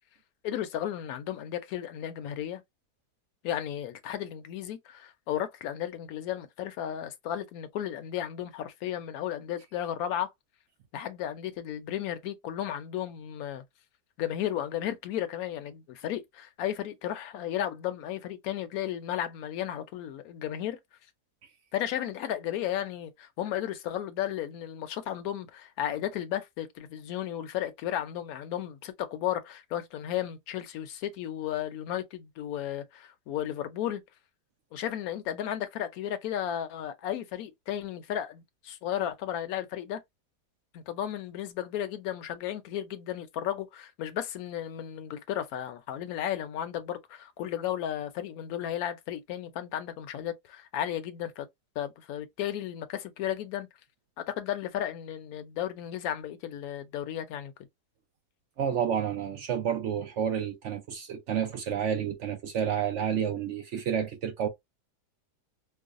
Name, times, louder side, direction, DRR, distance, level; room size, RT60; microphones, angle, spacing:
voice 1, 0.4-2.6 3.4-10.3 10.9-13.6 14.2-20.8 21.7-34.0 34.7-40.0 40.7-51.5 51.8-53.7 54.3-57.5, left 11 dB, 70° left, 1.0 m, -34 dB
voice 2, 58.6-64.5, right 8 dB, 65° right, 0.7 m, -30 dB
4.6 x 2.0 x 2.4 m
omnidirectional pair, 1.7 m